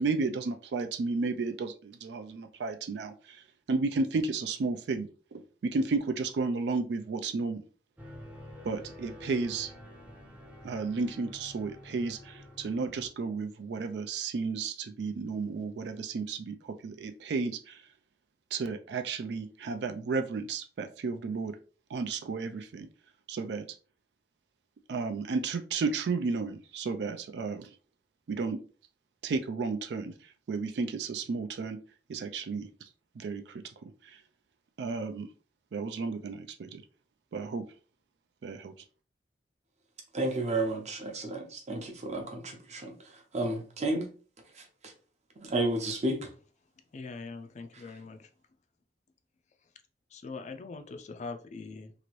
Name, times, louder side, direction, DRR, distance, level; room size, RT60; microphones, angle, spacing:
voice 1, 0.0-3.1 3.7-7.6 8.6-9.7 10.6-17.7 18.5-21.5 21.9-22.9 23.3-23.6 24.9-27.7 28.3-28.6 29.2-30.1 30.5-31.8 32.1-32.7 33.2-33.4 34.8-35.3 35.7-36.8 37.3-37.6 38.4-38.7, right 4 dB, 70° right, 8 dB, 0.4 m, -32 dB
sound 1, 8.0-13.1, left 1 dB, 10° right, 0.5 m, -48 dB
voice 2, 40.1-44.1 44.6-44.9 45.4-46.3, right 2 dB, 40° right, 3 dB, 0.7 m, -32 dB
voice 3, 46.9-48.3 50.1-51.9, left 4 dB, 40° left, 6 dB, 0.4 m, -42 dB
2.9 x 2.5 x 3.0 m, 0.39 s
head